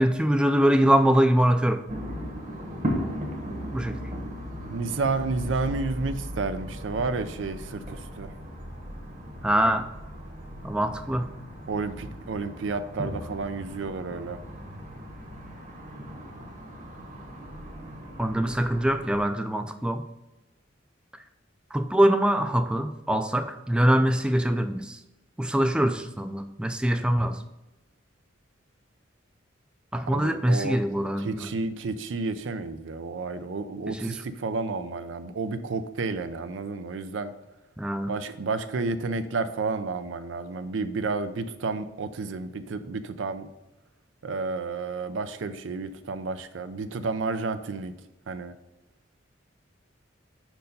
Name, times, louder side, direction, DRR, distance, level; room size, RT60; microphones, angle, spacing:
voice 1, 0.0-1.8 3.7-4.0 9.4-9.8 10.6-11.3 18.2-20.0 21.7-25.0 25.4-27.4 29.9-31.5 33.9-34.1 37.8-38.1, right 1 dB, 5° right, 8 dB, 0.3 m, -23 dB
sound 1, 1.9-19.2, equal, 40° right, 1.3 m, -37 dB
voice 2, 4.7-8.3 11.7-14.4 30.1-30.8 31.2-37.3 38.1-43.5 44.2-47.9 48.3-48.5, right 3 dB, 85° right, 11 dB, 0.5 m, -31 dB
5.2 x 4.6 x 5.3 m, 0.98 s
head